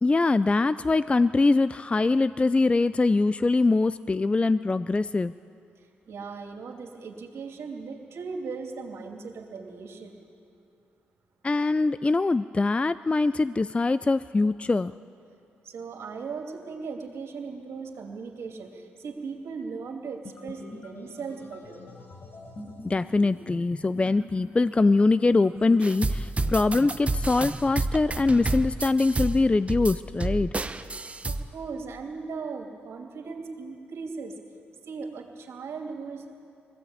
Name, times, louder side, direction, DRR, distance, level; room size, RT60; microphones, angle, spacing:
voice 1, 0.0-5.3 11.4-14.9 22.8-30.5, left 3 dB, 25° left, 14 dB, 0.4 m, -23 dB
voice 2, 5.8-10.2 15.6-21.8 31.2-34.4 34.8-36.3, right 4 dB, 70° right, 1 dB, 2.8 m, -38 dB
sound 1, 20.2-25.8, left 1 dB, 50° left, 7.5 m, -44 dB
sound 2, 25.8-31.4, right 2 dB, 25° right, 1.0 m, -30 dB
20.5 x 15.5 x 8.8 m, 2.5 s
supercardioid pair, 60°, 5 cm